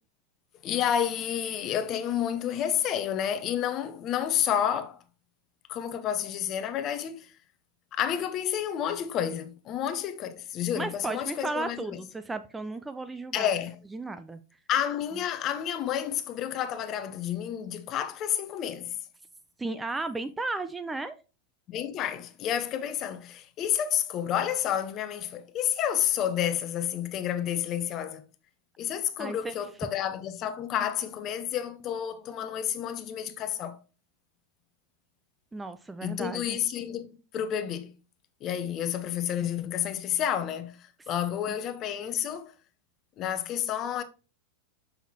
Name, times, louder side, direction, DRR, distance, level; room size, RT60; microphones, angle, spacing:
voice 1, 0.6-5.0 5.7-7.3 7.9-12.0 13.3-13.8 14.7-19.0 21.7-28.2 28.8-33.8 36.0-37.9 38.4-42.5 43.2-44.0, left 10 dB, 35° left, 0.8 m, -30 dB
voice 2, 10.7-13.5 13.9-14.4 19.6-21.2 29.2-29.6 35.5-36.6 41.0-41.1 41.5-41.6, right 3 dB, 10° right, 0.5 m, -34 dB
7.2 x 5.7 x 2.8 m
figure-of-eight pair, 90°, 0 cm